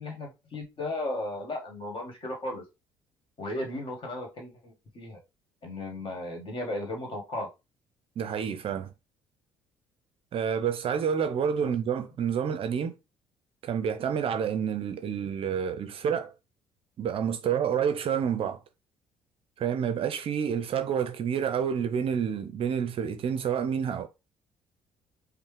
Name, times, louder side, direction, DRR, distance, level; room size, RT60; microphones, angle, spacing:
voice 1, 0.0-2.6 3.4-5.2 5.6-7.5 11.6-11.7, left 1 dB, 40° left, 1.7 m, -35 dB
voice 2, 8.2-8.9 10.3-13.0 13.6-16.3 17.0-18.6 19.6-24.1, right 7 dB, 45° right, 0.6 m, -28 dB
5.3 x 2.1 x 3.3 m
figure-of-eight pair, 50°, 13 cm